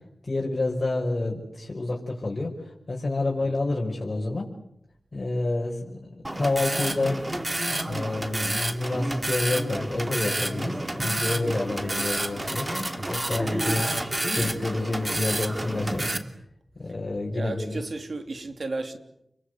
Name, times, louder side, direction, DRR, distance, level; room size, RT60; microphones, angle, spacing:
voice 1, 0.2-4.5 5.1-7.2 7.8-12.8 13.1-13.9 14.3-16.2 16.8-17.8, left 2 dB, 45° left, 5.6 m, -29 dB
sound 1, 6.2-16.2, right 1 dB, 25° right, 3.0 m, -29 dB
voice 2, 17.3-19.0, right 3 dB, 65° right, 3.3 m, -34 dB
29.5 x 22.5 x 8.2 m
cardioid pair, 50°, 0 cm